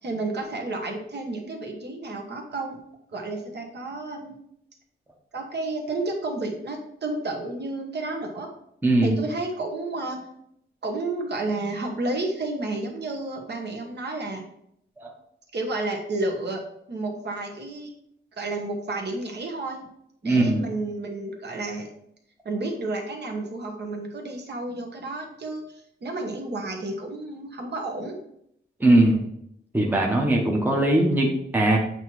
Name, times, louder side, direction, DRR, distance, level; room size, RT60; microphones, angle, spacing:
voice 1, 0.0-2.8 3.1-4.4 5.3-8.5 9.0-10.2 10.8-14.5 15.5-16.6 16.9-17.9 18.4-19.9 20.2-21.9 22.4-28.2, right 2 dB, 55° right, 1 dB, 1.2 m, -31 dB
voice 2, 8.8-9.2 15.0-15.1 20.2-20.6 28.8-29.2 29.7-31.8, right 1 dB, 10° right, 0 dB, 0.8 m, -20 dB
7.8 x 2.9 x 4.6 m, 0.74 s
wide cardioid pair, 150°, 21 cm